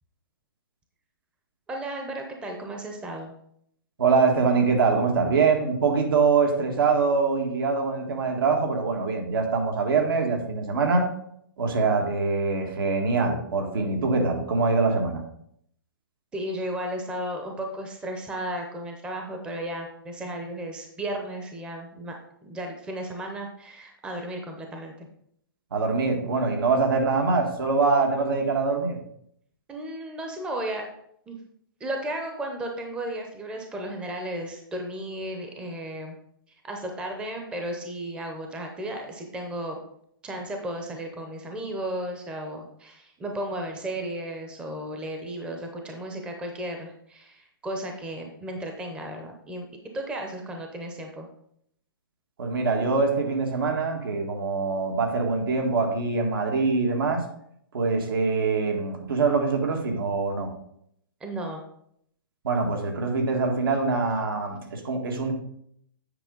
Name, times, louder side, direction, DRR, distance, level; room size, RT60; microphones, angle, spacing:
voice 1, 1.7-3.3 16.3-22.2 22.4-25.1 29.7-30.9 31.3-31.4 31.8-36.2 36.6-39.8 40.2-49.7 49.9-51.3 61.2-61.6, right 1 dB, 10° right, 2 dB, 0.7 m, -34 dB
voice 2, 4.0-11.1 11.6-15.2 25.7-29.0 52.4-57.2 57.7-60.5 62.4-65.3, right 4 dB, 75° right, 3 dB, 1.7 m, -24 dB
8.8 x 5.0 x 3.8 m, 0.70 s
hypercardioid pair, 155°, 12 cm